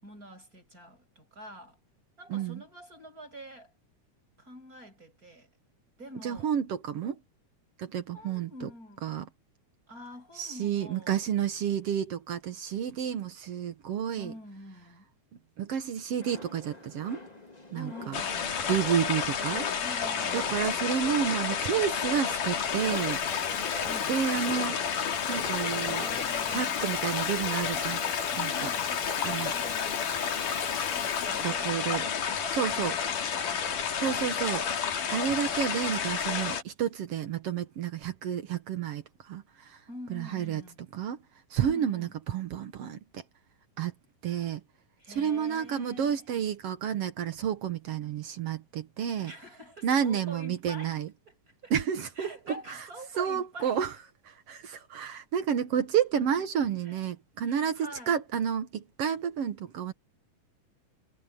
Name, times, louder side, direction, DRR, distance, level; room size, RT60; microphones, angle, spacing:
voice 1, 0.0-1.8 2.2-3.7 4.4-5.5 6.0-6.5 8.1-9.1 9.9-11.3 14.2-15.1 17.7-18.6 19.8-20.6 23.9-24.1 25.8-26.8 28.3-34.3 39.9-40.8 41.7-42.1 45.0-46.2 49.2-50.9 51.3-51.7 52.2-53.9 56.8-57.0 57.4-58.2, equal, 25° right, 7.4 m, -46 dB
voice 2, 2.3-2.6 6.2-7.2 7.8-8.7 9.0-9.3 10.4-14.3 15.6-17.2 17.7-18.2 18.7-19.7 20.3-23.2 24.1-24.8 25.3-26.1 26.5-28.0 28.4-28.7 29.2-29.5 31.4-32.0 32.5-32.9 34.0-39.8 40.1-40.6 40.9-41.2 41.5-43.2 43.8-43.9 44.2-44.6 45.1-49.3 49.8-51.1 51.7-52.3 52.7-52.8 53.2-53.9 54.5-59.9, right 8 dB, 60° right, 1.7 m, -30 dB
sound 1, 16.2-26.2, left 2 dB, 15° left, 1.9 m, -45 dB
sound 2, 18.1-36.6, left 7 dB, 75° left, 4.0 m, -30 dB
Water tap faucet / Fill (with liquid), 22.3-32.5, left 8 dB, 55° left, 1.8 m, -44 dB
omnidirectional pair, 3.8 m